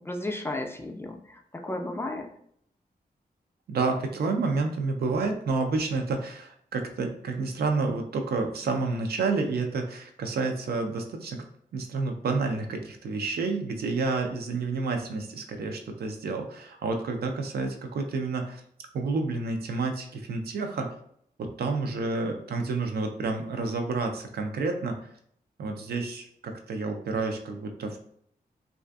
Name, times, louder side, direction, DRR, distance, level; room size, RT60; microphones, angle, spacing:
voice 1, 0.0-2.3, left 1 dB, 15° left, 3 dB, 0.3 m, -34 dB
voice 2, 3.7-11.4 11.7-18.6 18.9-20.9 21.4-25.1 25.6-28.0, right 3 dB, 80° right, 4 dB, 0.4 m, -29 dB
2.4 x 2.4 x 2.3 m, 0.67 s
cardioid pair, 80°, 16 cm